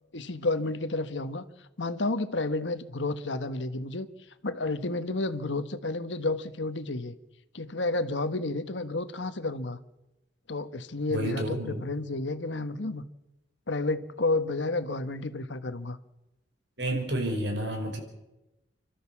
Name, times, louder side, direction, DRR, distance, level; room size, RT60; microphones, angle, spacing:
voice 1, 0.1-1.4 1.8-4.1 4.4-7.1 7.5-9.8 10.5-13.0 13.7-16.0, left 2 dB, 90° left, 10 dB, 1.4 m, -31 dB
voice 2, 11.1-11.8 16.8-18.0, right 1 dB, 70° right, 4 dB, 5.4 m, -30 dB
30.0 x 13.5 x 7.3 m, 0.99 s
head